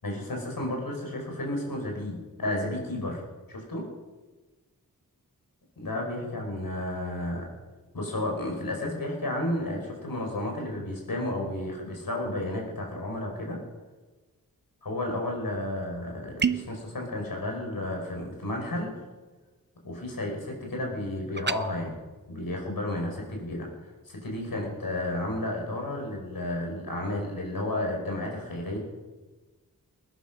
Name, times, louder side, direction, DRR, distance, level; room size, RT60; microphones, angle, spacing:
voice 1, 0.0-3.2 3.5-3.9 5.8-7.5 7.9-13.6 14.9-18.9 19.8-21.9 22.3-23.7 24.0-28.8, left 1 dB, 70° left, 0 dB, 5.4 m, -32 dB
sound 1, 16.4-16.8 21.4-21.6, right 6 dB, 30° right, 0.6 m, -27 dB
20.5 x 10.0 x 6.3 m, 1.2 s
wide cardioid pair, 75°, 36 cm